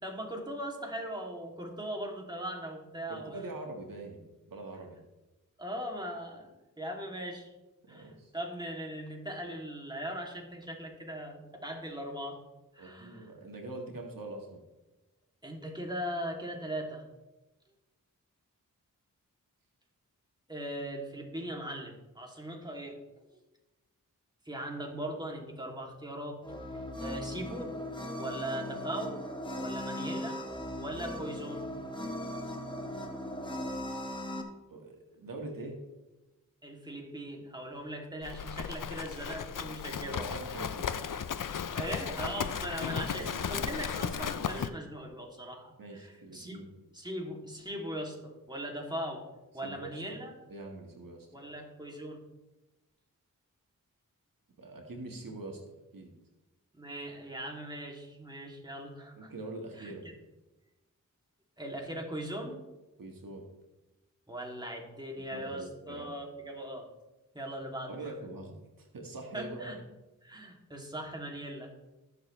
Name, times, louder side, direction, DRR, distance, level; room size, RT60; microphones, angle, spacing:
voice 1, 0.0-3.4 5.6-6.5 6.8-7.5 7.9-12.4 12.7-13.3 15.4-17.0 20.5-23.0 23.3-23.4 24.4-26.4 26.7-27.7 28.2-29.2 29.6-30.4 30.8-31.6 36.6-40.3 41.7-46.6 46.9-49.2 49.5-50.3 51.3-52.2 56.7-59.3 59.8-59.9 61.6-62.6 64.3-66.9 67.3-68.1 69.3-69.8 70.2-71.7, right 1 dB, 15° right, 0 dB, 2.9 m, -39 dB
voice 2, 3.1-5.0 7.9-8.3 12.8-14.6 34.7-35.8 40.0-41.0 42.9-43.7 45.8-46.7 49.6-50.2 50.5-51.3 54.6-55.6 55.9-56.1 59.2-60.1 63.0-63.4 65.2-66.1 67.9-69.8, right 2 dB, 80° right, 1 dB, 1.9 m, -43 dB
sound 1, 26.4-34.4, left 1 dB, 15° left, 1.8 m, -38 dB
Livestock farm animals working animals, 38.2-44.7, left 7 dB, 70° left, 0.7 m, -35 dB
20.0 x 6.8 x 3.4 m, 1.1 s
cardioid pair, 45°, 33 cm